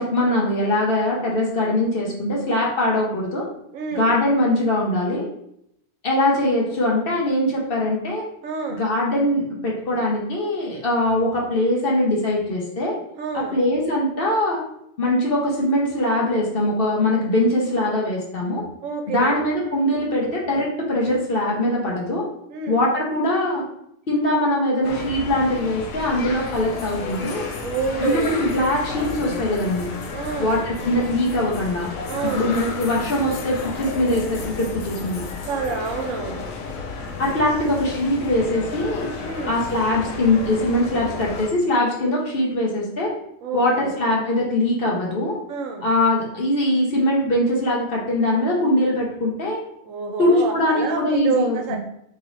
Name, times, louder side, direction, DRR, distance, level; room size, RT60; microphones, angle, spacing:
voice 1, 0.0-3.5 3.9-5.2 6.0-8.3 8.7-13.0 13.3-14.6 15.0-18.7 19.1-22.3 22.7-23.6 24.1-27.5 28.0-29.9 30.4-31.9 32.2-35.3 37.2-39.1 39.5-43.1 43.5-45.4 45.8-49.6 50.2-51.8, left 1 dB, 50° left, -3 dB, 0.9 m, -22 dB
voice 2, 3.7-4.1 8.4-8.8 13.2-13.6 18.8-19.4 22.5-22.8 27.6-28.4 30.1-30.6 32.1-32.5 35.5-36.5 39.2-39.6 43.4-43.9 45.5-45.8 49.9-51.8, right 5 dB, 75° right, 3 dB, 1.0 m, -28 dB
sound 1, 24.8-41.5, left 4 dB, 85° left, 1.1 m, -32 dB
3.1 x 3.0 x 3.9 m, 0.75 s
omnidirectional pair, 1.4 m